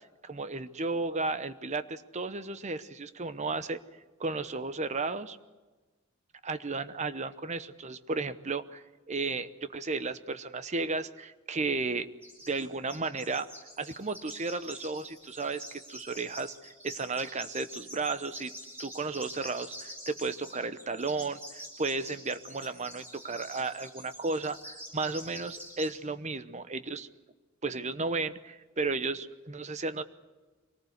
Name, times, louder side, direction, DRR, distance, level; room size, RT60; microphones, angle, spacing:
voice 1, 0.2-3.8 4.2-5.4 6.4-12.1 12.5-13.5 13.8-18.5 18.8-27.1 27.6-30.0, right 3 dB, 35° right, 12 dB, 0.9 m, -34 dB
sound 1, 12.2-12.6 12.9-25.9, equal, 10° right, 7.5 m, -46 dB
24.5 x 19.0 x 8.1 m, 1.2 s
head